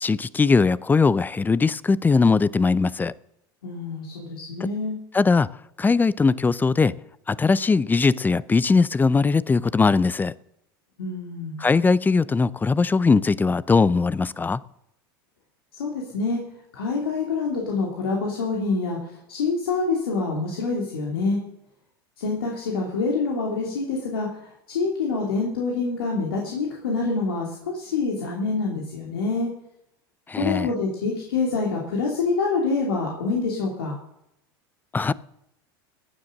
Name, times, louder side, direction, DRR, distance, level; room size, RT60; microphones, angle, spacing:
voice 1, 0.0-3.1 5.1-5.5 5.8-6.9 7.3-10.3 11.6-14.6 30.3-30.7 34.9-35.1, left 4 dB, 15° left, 20 dB, 0.5 m, -20 dB
voice 2, 3.6-5.0 11.0-11.6 15.7-16.4 16.7-19.0 19.3-21.4 22.2-24.3 24.7-29.5 30.4-34.0, left 4 dB, 90° left, -2 dB, 2.7 m, -26 dB
16.0 x 9.7 x 6.5 m, 0.80 s
hypercardioid pair, 95°, 12 cm